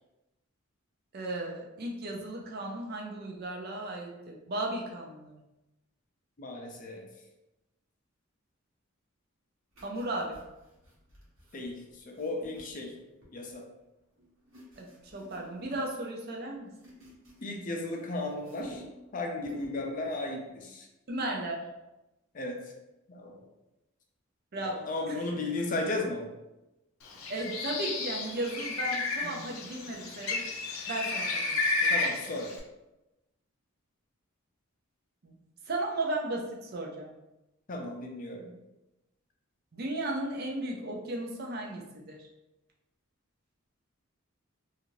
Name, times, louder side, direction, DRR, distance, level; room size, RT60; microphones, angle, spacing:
voice 1, 1.1-5.4 9.8-10.4 14.8-14.9 15.1-16.7 21.1-21.6 24.5-25.2 27.3-30.5 30.9-31.5 31.8-31.9 35.2-35.3 35.7-37.1 39.7-42.2, right 1 dB, 50° right, -1 dB, 0.5 m, -35 dB
voice 2, 6.4-7.1 11.5-11.8 12.0-12.9 13.3-13.6 17.4-18.8 19.1-20.9 22.3-22.6 23.1-23.4 24.6-26.3 29.2-29.4 31.9-32.5 37.7-38.5, left 2 dB, 40° left, 1 dB, 0.4 m, -35 dB
sound 1, 9.7-13.6 14.2-16.0 16.3-18.0 18.3-19.1 19.4-19.9 20.2-20.4, equal, 75° right, 1.1 m, -51 dB
Bird, 27.1-32.6, left 3 dB, 90° left, 0.5 m, -32 dB
2.6 x 2.4 x 3.0 m, 0.97 s
head